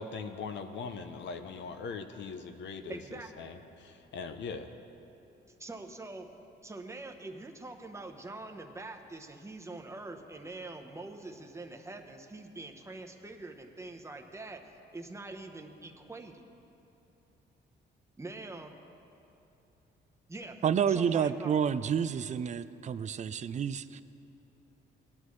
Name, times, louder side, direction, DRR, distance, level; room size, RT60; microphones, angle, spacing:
voice 1, 0.0-4.7, left 5 dB, 65° left, 7 dB, 0.7 m, -41 dB
voice 2, 2.9-3.3 5.6-6.3 6.6-16.4 18.2-18.7 20.3-21.6, right 2 dB, 15° right, 4 dB, 0.9 m, -44 dB
voice 3, 20.6-24.0, right 7 dB, 35° right, 14 dB, 0.4 m, -29 dB
18.0 x 10.5 x 3.2 m, 2.9 s
cardioid pair, 90°, 20 cm